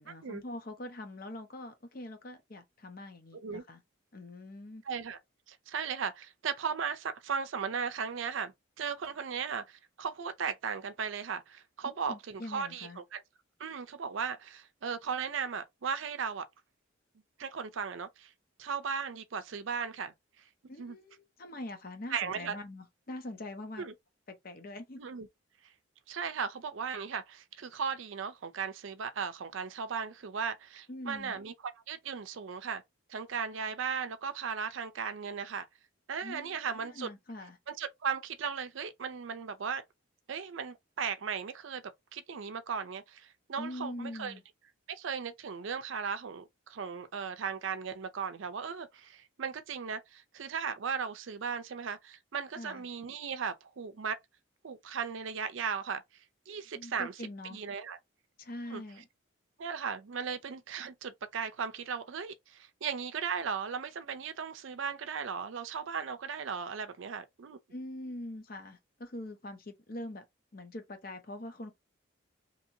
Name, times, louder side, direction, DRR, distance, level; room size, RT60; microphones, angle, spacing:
voice 1, 0.0-3.8 4.1-4.8 11.8-13.0 20.7-23.8 24.3-25.0 30.9-31.4 36.2-37.6 43.6-44.4 52.6-52.9 56.8-57.6 58.4-59.1 67.7-70.2 70.5-71.7, left 1 dB, 45° left, 0.7 m, -43 dB
voice 2, 4.9-5.2 5.5-13.2 13.6-16.5 17.4-18.3 18.6-20.1 20.8-21.0 22.1-22.6 23.8-23.9 25.0-25.3 26.1-31.5 31.9-32.8 33.1-35.7 36.1-37.1 37.7-39.8 40.3-41.8 42.1-44.3 44.9-54.2 54.6-56.0 56.5-57.1 57.5-58.0 58.7-58.8 59.6-67.6, right 6 dB, 70° right, 0.5 m, -37 dB
2.9 x 2.7 x 2.6 m
head